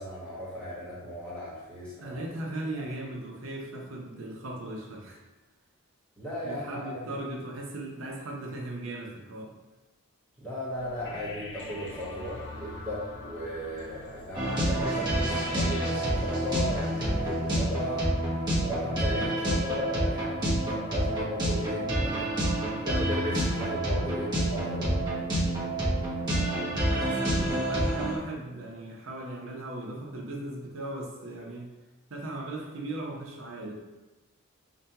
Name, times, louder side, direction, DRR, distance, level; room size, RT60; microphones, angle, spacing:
voice 1, 0.0-2.2 2.7-2.9 6.2-7.2 10.4-18.1 18.6-22.3 22.8-25.0, left 1 dB, 5° left, -9 dB, 1.2 m, -36 dB
voice 2, 2.0-5.2 6.4-9.5 26.7-31.7 32.1-33.7, right 2 dB, 60° right, -1 dB, 0.7 m, -38 dB
sound 1, 10.7-15.9, left 2 dB, 55° left, 0.6 m, -43 dB
sound 2, 14.3-28.2, right 1 dB, 20° right, 0.7 m, -28 dB
4.9 x 2.2 x 2.8 m, 1.1 s
head